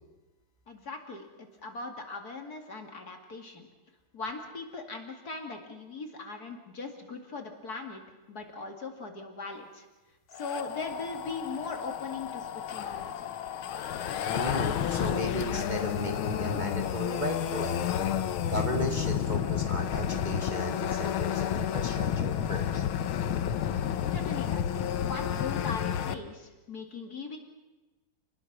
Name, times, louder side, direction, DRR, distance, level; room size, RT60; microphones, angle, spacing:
voice 1, 0.7-3.7 4.1-8.0 8.3-9.9 10.3-13.3 24.1-27.4, left 4 dB, 45° left, 3 dB, 2.8 m, -40 dB
sound 1, 10.3-26.2, left 9 dB, 80° left, 1.8 m, -31 dB
voice 2, 14.3-17.9 18.5-22.8, equal, 20° right, 2 dB, 1.9 m, -35 dB
28.5 x 20.0 x 6.1 m, 1.2 s
omnidirectional pair, 2.3 m